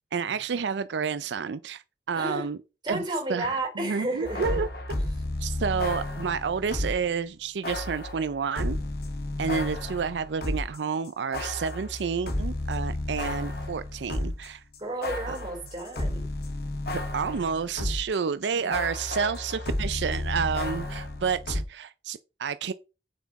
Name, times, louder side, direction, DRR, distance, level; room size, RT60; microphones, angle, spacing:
voice 1, 0.1-2.6 2.9-3.0 3.3-4.7 5.4-8.8 9.4-14.6 15.3-15.4 17.1-22.7, right 6 dB, 80° right, 0.5 m, -30 dB
voice 2, 2.1-2.5 2.8-4.6 14.8-16.3 18.5-18.8, right 1 dB, 25° right, 4.1 m, -32 dB
sound 1, 4.2-7.1 7.6-10.8 11.1-18.2 18.4-21.6, left 1 dB, 60° left, 1.7 m, -32 dB
8.4 x 7.1 x 4.1 m
head